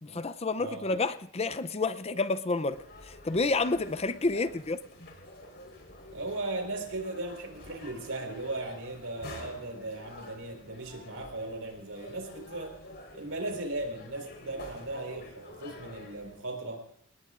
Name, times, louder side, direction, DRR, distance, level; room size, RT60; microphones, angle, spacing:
voice 1, 0.0-4.8, left 3 dB, 30° left, 0.6 m, -30 dB
sound 1, 2.7-16.4, left 1 dB, 55° left, 4.4 m, -49 dB
voice 2, 6.1-12.7 13.1-16.8, right 2 dB, 75° right, 4.5 m, -37 dB
28.0 x 19.0 x 2.5 m
head